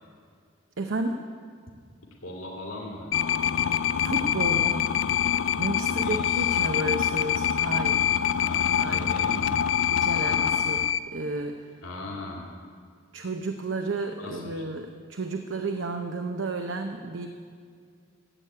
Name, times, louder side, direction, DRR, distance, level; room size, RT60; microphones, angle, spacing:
voice 1, 0.8-1.3 4.0-4.8 5.6-8.2 8.7-9.1 9.9-10.8 11.1-11.6 13.1-17.3, right 2 dB, 70° right, 5 dB, 0.7 m, -32 dB
voice 2, 2.2-3.2 5.8-6.8 8.3-9.5 10.6-10.7 11.8-12.5 14.2-14.6, left 1 dB, 90° left, -2 dB, 2.3 m, -39 dB
sound 1, 3.1-11.0, left 9 dB, 70° left, 0.4 m, -25 dB
14.0 x 8.3 x 8.6 m, 2.1 s
head